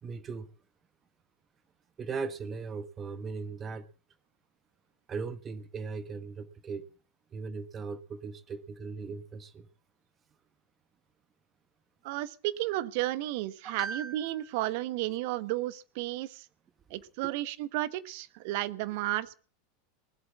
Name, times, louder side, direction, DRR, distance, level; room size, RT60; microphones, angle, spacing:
voice 1, 0.0-0.5 2.0-3.8 5.1-6.8 7.3-9.7 13.6-14.5, right 5 dB, 30° right, 12 dB, 1.1 m, -38 dB
voice 2, 12.0-16.5 16.9-19.3, right 16 dB, 55° right, 15 dB, 1.1 m, -33 dB
20.0 x 8.0 x 8.4 m, 0.41 s
figure-of-eight pair, 85°, 0 cm